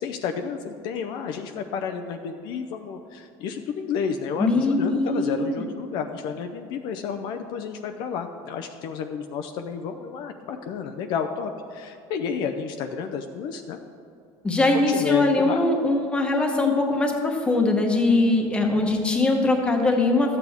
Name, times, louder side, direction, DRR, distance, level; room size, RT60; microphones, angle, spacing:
voice 1, 0.0-13.8 14.7-15.6, left 6 dB, 55° left, 6 dB, 0.5 m, -31 dB
voice 2, 4.4-5.5 14.4-20.4, left 2 dB, 10° left, 2 dB, 1.0 m, -21 dB
13.0 x 8.2 x 3.5 m, 2.5 s
cardioid pair, 160°, 10 cm